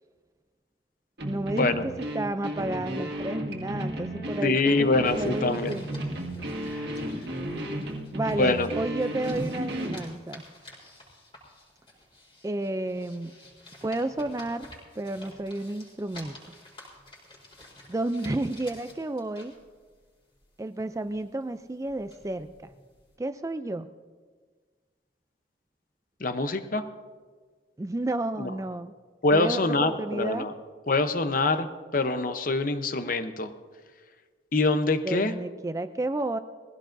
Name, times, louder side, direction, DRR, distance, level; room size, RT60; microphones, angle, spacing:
voice 1, 1.2-5.9 8.1-10.4 12.4-13.3 13.8-14.7 15.0-16.4 17.9-19.5 20.6-22.7 23.2-23.9 27.8-28.9 29.3-30.5 35.0-36.4, right 2 dB, 15° right, 11 dB, 0.3 m, -31 dB
sound 1, 1.2-10.0, equal, 60° right, 1.7 m, -33 dB
voice 2, 4.4-5.7 6.7-6.8 8.4-8.7 26.2-26.8 29.2-30.5 30.9-33.5 34.5-35.3, left 3 dB, 45° left, 9 dB, 0.8 m, -25 dB
sound 2, 4.8-20.7 21.0-23.2, left 1 dB, 30° left, 4.3 m, -51 dB
21.0 x 16.0 x 2.6 m, 1.5 s
head